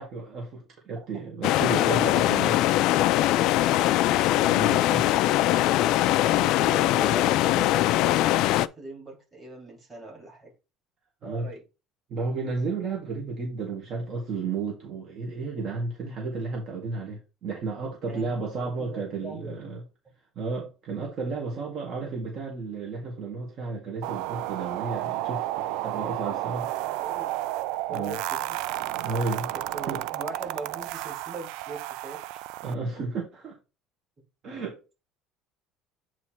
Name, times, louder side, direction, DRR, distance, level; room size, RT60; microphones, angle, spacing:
voice 1, 0.0-2.5 4.4-4.8 11.2-11.5 12.1-19.8 20.4-26.7 27.9-28.2 29.0-29.5 29.9-30.0 32.6-33.6 34.4-34.9, right 4 dB, 35° right, 1.8 m, -33 dB
sound 1, 1.4-8.7, left 15 dB, 55° left, 0.3 m, -22 dB
voice 2, 1.8-2.2 2.6-2.7 3.4-3.7 4.6-10.5 11.2-11.6 18.1-19.7 21.5-21.6 21.9-22.1 25.9-26.4 26.8-27.4 27.9-28.6 29.0-29.2 29.5-32.4, right 2 dB, 15° right, 2.9 m, -42 dB
sound 2, 24.0-32.7, right 15 dB, 65° right, 0.3 m, -32 dB
8.3 x 3.1 x 4.5 m
cardioid pair, 180°, 0 cm